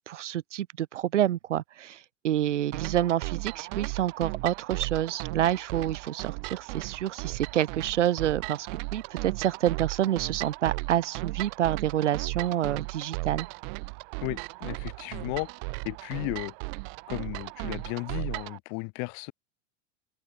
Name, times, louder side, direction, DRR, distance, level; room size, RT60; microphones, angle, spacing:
voice 1, 0.0-13.5, right 11 dB, 70° right, 6.1 m, -28 dB
sound 1, 2.7-18.6, right 38 dB, 55° right, 7.5 m, -36 dB
voice 2, 14.2-15.5 15.8-16.5 17.1-19.3, left 36 dB, 50° left, 4.8 m, -34 dB
open air
hypercardioid pair, 95°, 37 cm